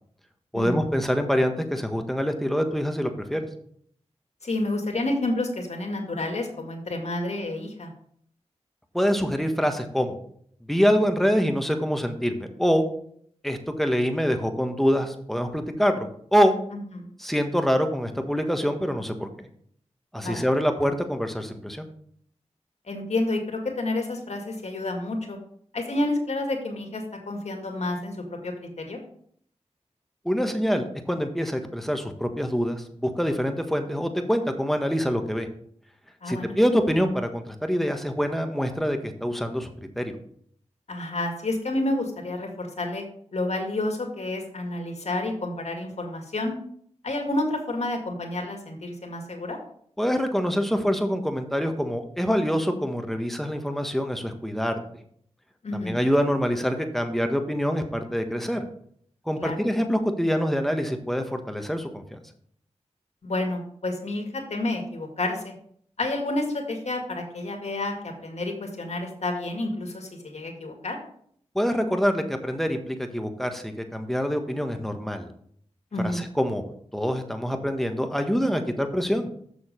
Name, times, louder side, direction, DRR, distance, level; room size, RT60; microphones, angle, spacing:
voice 1, 0.5-3.5 8.9-10.2 10.7-12.8 13.4-16.6 17.2-19.5 20.1-21.9 30.2-35.5 36.3-39.7 39.9-40.2 50.0-54.8 55.7-58.6 59.2-62.2 71.5-75.3 76.0-76.6 76.9-79.3, equal, ahead, 6 dB, 1.5 m, -25 dB
voice 2, 4.4-7.9 16.7-17.1 20.2-20.5 22.9-25.4 25.7-29.0 36.2-36.6 40.9-43.0 43.3-46.5 47.0-49.6 55.6-56.0 59.4-59.6 63.2-65.5 66.0-71.0 75.9-76.3, left 2 dB, 65° left, 3 dB, 2.1 m, -29 dB
7.0 x 6.5 x 5.2 m, 0.63 s
cardioid pair, 45°, 12 cm